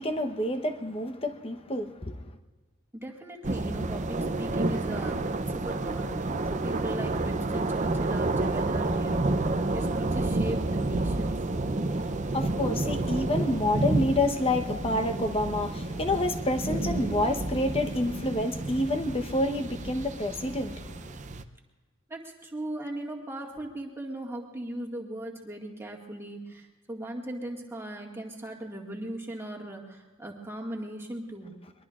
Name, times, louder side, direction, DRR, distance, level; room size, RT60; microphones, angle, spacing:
voice 1, 0.0-2.2 11.9-21.1, left 1 dB, 25° left, 1.0 m, -28 dB
voice 2, 2.9-11.5 22.1-31.6, right 1 dB, 10° right, 1.9 m, -38 dB
sound 1, 3.4-21.4, right 2 dB, 35° right, 0.6 m, -30 dB
24.0 x 21.5 x 2.5 m
head